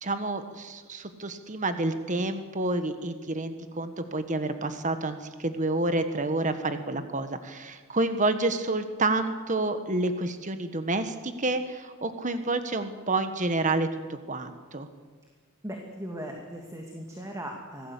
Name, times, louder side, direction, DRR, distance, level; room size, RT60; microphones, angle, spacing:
voice 1, 0.0-14.9, right 2 dB, 35° right, 9 dB, 1.5 m, -29 dB
voice 2, 15.6-17.9, equal, 15° right, 1 dB, 2.6 m, -38 dB
26.0 x 17.5 x 8.4 m, 1.4 s
head